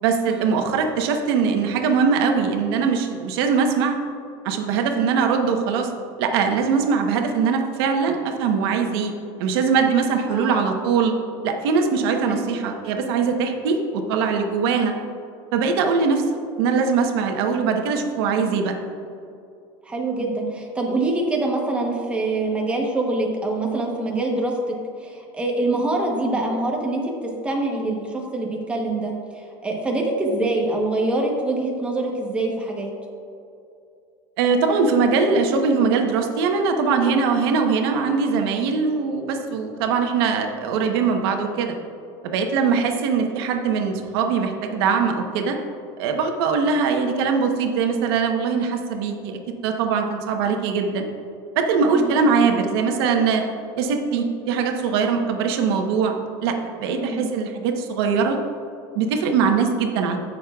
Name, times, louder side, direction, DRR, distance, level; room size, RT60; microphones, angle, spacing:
voice 1, 0.0-4.0 4.4-5.9 6.2-9.1 9.4-11.1 11.4-14.9 15.5-16.2 16.6-18.7 34.4-41.7 42.2-45.6 46.0-51.1 51.6-53.4 53.8-56.1 56.4-58.4 58.9-60.2, right 5 dB, 90° right, 4 dB, 1.0 m, -21 dB
voice 2, 10.3-10.7 12.3-12.5 19.8-32.9 42.7-42.9 51.9-52.2 56.9-57.3, right 2 dB, 10° right, 0 dB, 1.0 m, -25 dB
16.5 x 6.4 x 2.4 m, 2.6 s
cardioid pair, 175°, 12 cm